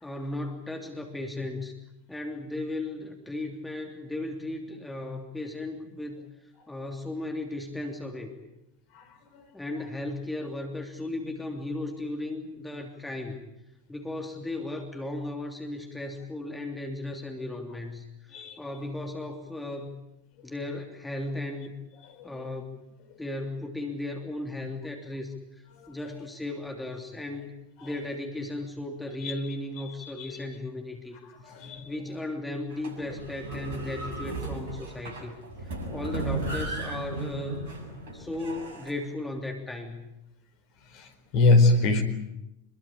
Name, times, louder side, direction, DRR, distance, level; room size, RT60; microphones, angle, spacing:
voice 1, 0.0-1.7 2.1-6.2 6.7-8.4 9.5-13.4 13.9-20.0 20.4-21.7 22.2-22.8 23.2-27.5 27.8-31.2 31.4-35.4 35.6-37.6 38.1-40.0, left 2 dB, 5° left, 2 dB, 3.1 m, -36 dB
voice 2, 30.0-30.3 31.5-31.9 40.9-41.1 41.3-42.0, left 2 dB, 40° left, 8 dB, 4.6 m, -23 dB
sound 1, 32.7-38.9, right 2 dB, 55° right, 7.2 m, -35 dB
26.5 x 22.5 x 8.6 m, 0.88 s
figure-of-eight pair, 90°, 0 cm